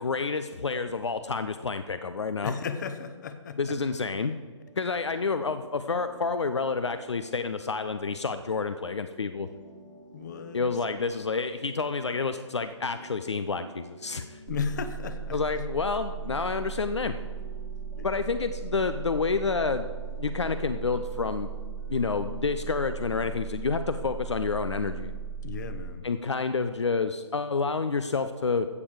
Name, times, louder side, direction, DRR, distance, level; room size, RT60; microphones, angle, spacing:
voice 1, 0.0-2.6 3.6-4.3 4.8-9.5 10.5-14.4 15.3-17.2 18.0-19.9 20.2-21.5 21.9-25.1 26.0-28.7, left 4 dB, 65° left, 10 dB, 0.7 m, -29 dB
voice 2, 2.4-3.7 10.1-10.6 14.5-15.4 18.0-18.1 25.4-26.0, left 6 dB, 35° left, 10 dB, 1.0 m, -34 dB
sound 1, 4.6-23.9, right 1 dB, 80° right, 2.4 m, -51 dB
sound 2, 14.5-25.9, right 7 dB, 20° right, 1.2 m, -37 dB
15.5 x 7.1 x 5.0 m, 1.5 s
figure-of-eight pair, 135°, 16 cm